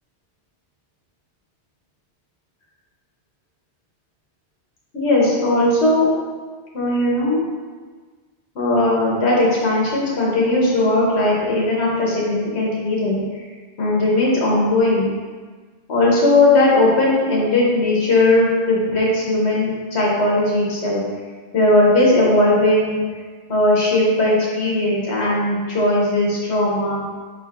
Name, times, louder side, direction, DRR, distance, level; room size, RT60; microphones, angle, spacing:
voice 1, 4.9-6.1 6.7-7.5 8.5-13.4 13.8-15.1 15.9-21.0 21.5-23.0 23.5-27.0, left 2 dB, 70° left, -5 dB, 1.3 m, -18 dB
4.4 x 4.3 x 2.5 m, 1.5 s
omnidirectional pair, 1.2 m